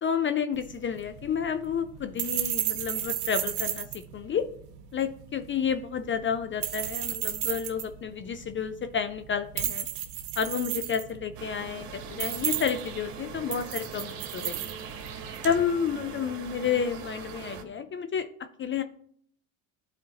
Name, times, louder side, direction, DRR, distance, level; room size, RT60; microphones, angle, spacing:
voice 1, 0.0-4.4 4.9-9.9 10.4-14.6 15.4-18.3 18.6-18.8, left 7 dB, 25° left, 10 dB, 0.4 m, -30 dB
sound 1, 0.5-15.6, right 12 dB, 85° right, 1.0 m, -34 dB
sound 2, 11.3-17.6, right 6 dB, 65° right, 1.4 m, -41 dB
11.5 x 4.2 x 2.8 m, 0.63 s
hypercardioid pair, 80°, 46 cm